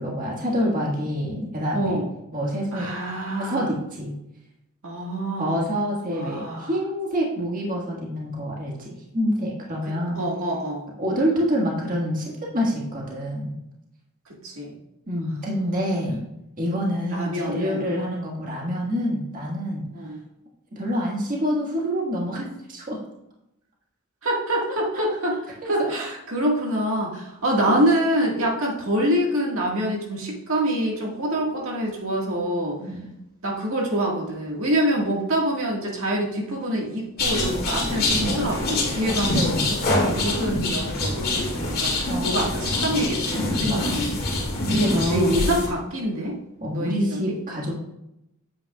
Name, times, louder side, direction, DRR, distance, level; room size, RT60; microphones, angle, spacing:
voice 1, 0.0-2.0 2.3-2.9 3.4-4.1 5.4-10.2 11.0-13.5 15.1-16.2 16.6-19.9 20.7-23.0 24.9-25.0 25.6-25.9 27.7-27.8 32.8-33.2 38.1-38.5 39.3-39.6 42.1-42.5 43.6-44.1 44.7-45.4 46.6-47.7, equal, 40° right, -3 dB, 1.7 m, -27 dB
voice 2, 1.7-2.1 2.7-3.7 4.8-5.6 6.1-6.7 10.1-10.9 14.4-14.7 17.1-17.8 19.9-20.2 24.2-25.3 25.7-32.8 33.4-44.0 44.9-46.3 46.7-47.2, right 1 dB, 70° right, -2 dB, 1.8 m, -26 dB
sound 1, 37.2-45.7, left 2 dB, 45° left, 2.1 m, -25 dB
8.8 x 8.7 x 2.4 m, 0.86 s
head